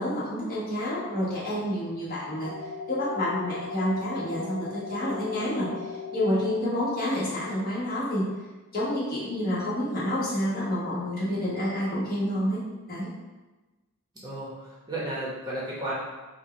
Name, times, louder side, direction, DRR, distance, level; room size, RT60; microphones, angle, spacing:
voice 1, 0.0-2.5 2.9-5.7 6.1-8.2 8.7-12.6 12.9-13.1, left 1 dB, 40° left, -8 dB, 1.4 m, -28 dB
sound 1, 2.4-6.4, left 4 dB, 70° right, 0.7 m, -37 dB
voice 2, 14.2-15.9, right 1 dB, 20° right, -7 dB, 0.9 m, -33 dB
4.6 x 2.3 x 4.3 m, 1.2 s
head